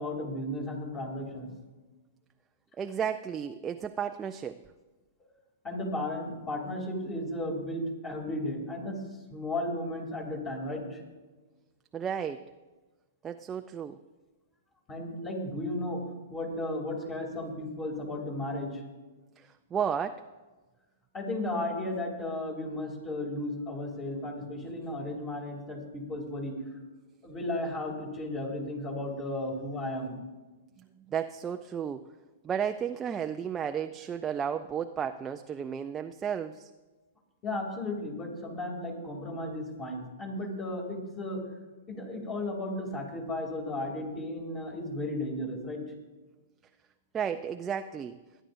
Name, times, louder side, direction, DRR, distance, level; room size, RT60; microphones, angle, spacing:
voice 1, 0.0-1.5 5.6-9.0 9.3-11.0 14.9-16.0 16.3-18.8 21.1-26.6 27.2-30.2 37.4-41.4 41.9-45.8, left 1 dB, 25° left, 1 dB, 2.9 m, -34 dB
voice 2, 2.8-4.6 11.9-12.4 13.2-14.0 19.4-20.2 30.8-32.0 32.4-36.7 47.1-48.2, right 8 dB, 20° right, 6 dB, 0.4 m, -33 dB
22.5 x 9.9 x 2.6 m, 1.2 s
hypercardioid pair, 125°, 0 cm